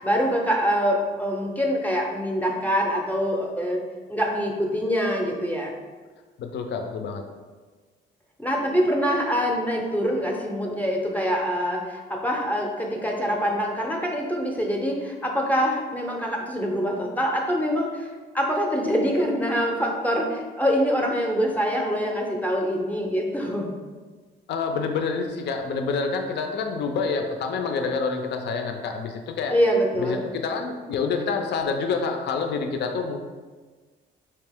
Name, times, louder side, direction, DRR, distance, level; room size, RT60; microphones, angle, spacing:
voice 1, 0.0-3.8 4.1-5.7 8.4-18.1 18.3-23.7 29.5-30.2, equal, 10° left, 0 dB, 0.5 m, -24 dB
voice 2, 6.4-7.2 24.5-29.5 30.0-33.2, left 5 dB, 60° left, 5 dB, 0.4 m, -27 dB
3.4 x 2.9 x 3.4 m, 1.4 s
cardioid pair, 90°, 20 cm